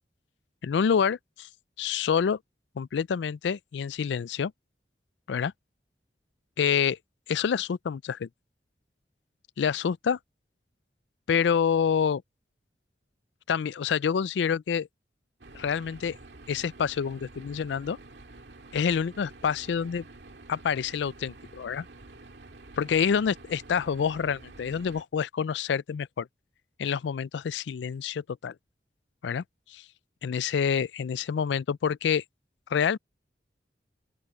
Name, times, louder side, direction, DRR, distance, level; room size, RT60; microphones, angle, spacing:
voice 1, 0.6-1.5 1.8-2.4 2.8-4.5 5.3-5.5 6.6-7.0 7.3-8.3 9.6-10.2 11.3-12.2 13.5-14.9 15.5-16.2 16.5-18.0 18.7-20.0 20.5-21.9 22.8-26.3 26.8-28.5 29.2-29.8 30.2-32.2 32.7-33.0, left 7 dB, 85° left, 0.4 m, -27 dB
sound 1, 15.4-25.0, right 2 dB, 80° right, 2.0 m, -49 dB
open air
head